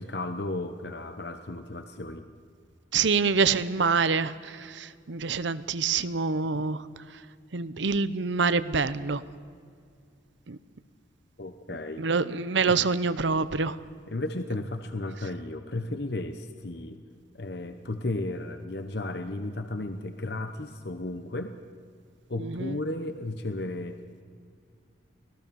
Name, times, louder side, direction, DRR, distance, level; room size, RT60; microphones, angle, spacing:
voice 1, 0.0-2.3 6.5-6.6 11.4-12.1 12.6-12.8 14.1-17.0 17.3-21.6 22.3-24.0, left 2 dB, 55° left, 8 dB, 0.9 m, -34 dB
voice 2, 2.9-6.8 7.5-9.2 10.5-10.6 12.0-13.8 22.4-22.8, right 4 dB, 70° right, 15 dB, 0.8 m, -26 dB
25.0 x 18.0 x 7.0 m, 2.2 s
head